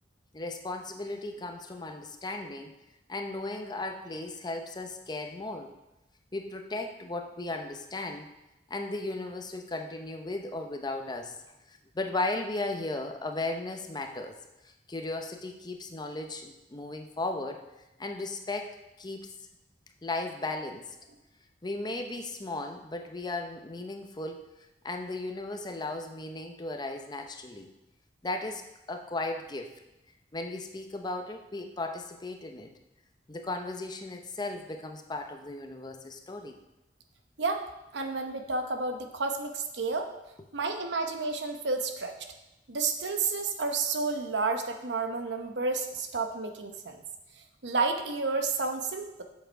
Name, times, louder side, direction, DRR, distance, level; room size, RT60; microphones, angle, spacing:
voice 1, 0.3-2.7 3.1-5.7 6.3-8.3 8.7-11.4 11.7-14.4 14.9-17.6 18.0-19.3 20.0-21.0 21.6-24.4 24.8-27.7 28.2-29.7 30.3-32.7 33.3-36.6, left 2 dB, 25° left, 4 dB, 0.7 m, -36 dB
voice 2, 37.9-40.1 40.5-42.1 42.7-47.0 47.6-49.2, right 3 dB, 70° right, 6 dB, 0.9 m, -30 dB
7.8 x 7.2 x 4.5 m, 0.95 s
head